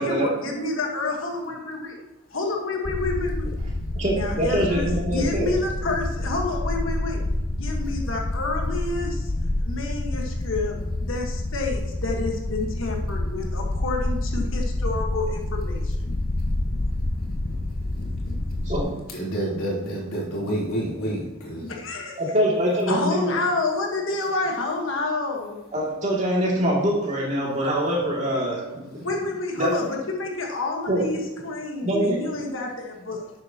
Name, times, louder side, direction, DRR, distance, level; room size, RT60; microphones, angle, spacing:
voice 1, 0.0-1.9 2.3-3.5 4.0-7.2 7.5-9.3 9.6-10.7 11.0-16.1 17.0-18.6 19.3-19.4 20.4-21.0 21.4-22.2 22.9-25.6 29.0-33.3, left 3 dB, 70° left, 0 dB, 1.4 m, -29 dB
sound 1, 2.8-18.8, left 1 dB, 30° left, 0.5 m, -28 dB
voice 2, 3.9-5.5 18.6-18.9 22.2-23.2 25.7-29.1 29.6-29.7 30.9-31.0 31.8-32.3, equal, 35° right, -4 dB, 2.5 m, -24 dB
voice 3, 19.1-21.6, right 1 dB, 85° left, -4 dB, 3.2 m, -28 dB
11.5 x 7.8 x 2.9 m, 1.0 s
head